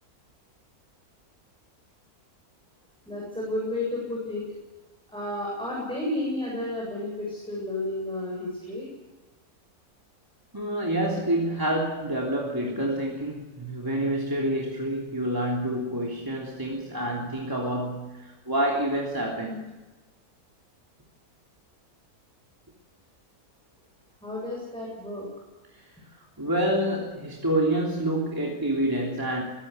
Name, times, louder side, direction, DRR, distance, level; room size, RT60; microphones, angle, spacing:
voice 1, 3.1-4.4 5.1-8.9 24.2-25.3, left 1 dB, 5° left, -3 dB, 7.9 m, -31 dB
voice 2, 10.5-19.7 25.8-25.9 26.4-29.4, right 1 dB, 15° right, -2 dB, 3.4 m, -27 dB
23.0 x 16.0 x 8.3 m, 1.2 s
omnidirectional pair, 1.6 m